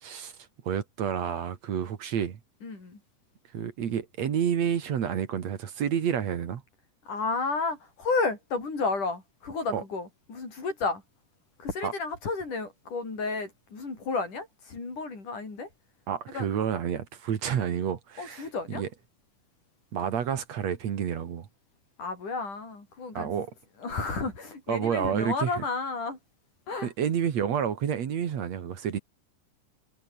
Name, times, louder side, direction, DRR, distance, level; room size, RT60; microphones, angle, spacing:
voice 1, 0.0-0.3 0.7-2.4 3.5-6.6 9.7-9.8 11.8-11.9 16.1-18.9 19.9-21.5 23.1-23.5 24.7-25.6 26.8-29.0, right 8 dB, 60° right, 2.9 m, -29 dB
voice 2, 2.6-3.0 7.1-11.0 11.6-15.7 16.3-16.5 18.2-18.8 22.0-23.5 23.8-26.2 26.7-26.9, left 4 dB, 75° left, 8.6 m, -32 dB
omnidirectional pair, 3.6 m